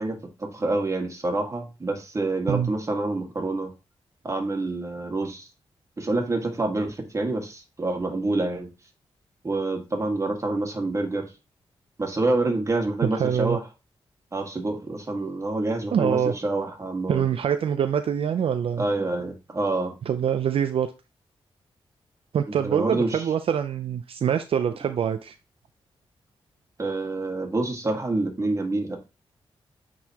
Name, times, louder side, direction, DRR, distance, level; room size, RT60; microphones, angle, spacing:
voice 1, 0.0-3.7 4.2-5.5 6.0-8.7 9.4-11.3 12.0-13.6 14.3-17.2 18.8-19.9 22.5-23.3 26.8-29.0, right 2 dB, 30° right, 1.7 m, -27 dB
voice 2, 13.2-13.6 15.9-16.3 17.1-18.8 20.1-20.9 22.3-25.3, right 8 dB, 70° right, 0.4 m, -24 dB
8.7 x 3.9 x 2.9 m
cardioid pair, 90°, 10 cm